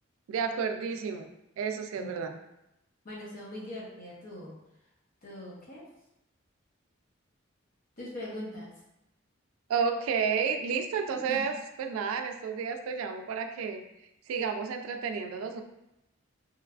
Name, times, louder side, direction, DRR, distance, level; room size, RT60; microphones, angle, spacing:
voice 1, 0.3-1.3 1.6-2.4 9.7-13.8 14.3-15.6, right 6 dB, 85° right, 6 dB, 0.3 m, -31 dB
voice 2, 3.0-4.5 5.2-5.9 8.0-8.7 11.1-11.4, left 1 dB, 45° left, -4 dB, 0.7 m, -41 dB
3.0 x 2.3 x 2.3 m, 0.87 s
head